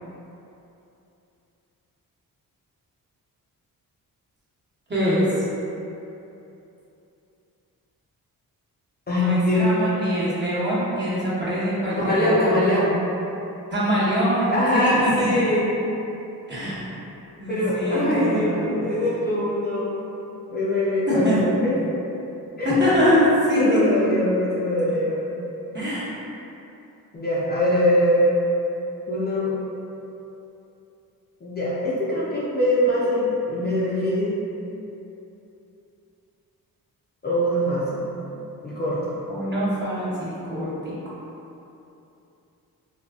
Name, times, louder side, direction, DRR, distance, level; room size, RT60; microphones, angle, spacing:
voice 1, 4.9-5.4 9.1-12.7 13.7-15.1 15.5-15.6 16.5-16.9 17.4-18.8 21.1-21.9 22.6-23.8 25.7-26.1 39.3-41.0, equal, 30° right, -10 dB, 1.0 m, -24 dB
voice 2, 9.1-9.9 12.0-13.0 14.5-15.7 17.5-20.0 20.5-21.8 22.6-22.7 23.6-25.3 27.1-28.3 29.1-29.5 31.4-34.4 37.2-38.1 38.6-39.0, left 1 dB, 25° left, -9 dB, 0.5 m, -22 dB
3.9 x 2.3 x 2.3 m, 2.9 s
cardioid pair, 110°, 37 cm